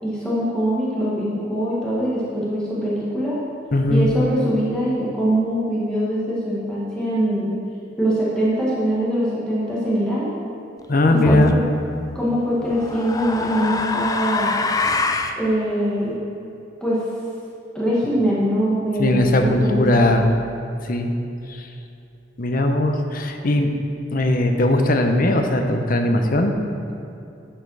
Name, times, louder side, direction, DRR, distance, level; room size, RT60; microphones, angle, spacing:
voice 1, 0.0-3.4 3.9-7.5 8.0-10.3 11.1-11.6 12.1-14.5 15.4-16.2 16.8-17.0 17.7-20.1, equal, 5° left, -8 dB, 1.6 m, -22 dB
voice 2, 3.7-4.1 10.9-11.5 19.0-20.3 20.8-21.1 21.5-21.7 22.4-23.7 24.1-26.5, left 1 dB, 50° left, 5 dB, 0.8 m, -19 dB
sound 1, 11.3-11.6 12.6-15.4, left 3 dB, 20° left, 0.4 m, -24 dB
10.0 x 5.4 x 6.3 m, 2.7 s
head